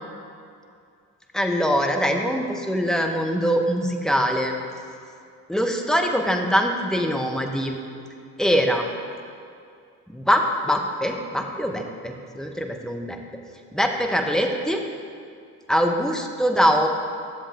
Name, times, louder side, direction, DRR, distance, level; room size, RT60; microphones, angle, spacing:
voice 1, 1.3-4.5 5.5-7.8 8.4-8.9 10.1-13.2 13.7-14.8 15.7-16.9, equal, ahead, 3 dB, 1.0 m, -23 dB
11.0 x 7.2 x 3.6 m, 2.4 s
hypercardioid pair, 50°, 46 cm